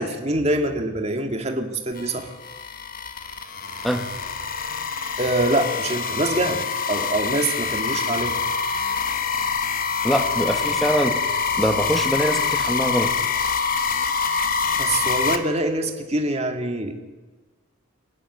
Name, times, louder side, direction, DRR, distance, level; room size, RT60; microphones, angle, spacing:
voice 1, 0.0-2.3 5.2-8.4 14.8-16.9, right 1 dB, 30° right, 4 dB, 2.0 m, -25 dB
sound 1, 2.0-15.4, left 5 dB, 40° left, 1.3 m, -25 dB
voice 2, 10.0-13.1, equal, ahead, 6 dB, 1.5 m, -24 dB
24.5 x 11.0 x 9.6 m, 1.2 s
head